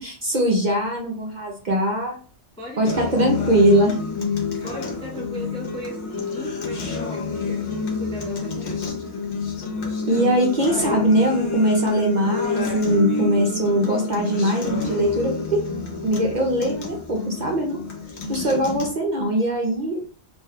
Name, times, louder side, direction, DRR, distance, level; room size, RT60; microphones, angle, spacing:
voice 1, 0.0-2.2 2.8-3.9 10.0-15.6 16.0-17.8 18.3-20.0, right 1 dB, 50° right, 0 dB, 0.6 m, -21 dB
voice 2, 2.6-3.9 4.6-9.1, equal, 10° left, -1 dB, 0.4 m, -37 dB
Acoustic guitar, 2.9-18.9, left 4 dB, 70° left, 1.1 m, -28 dB
2.6 x 2.2 x 3.5 m, 0.41 s
omnidirectional pair, 1.2 m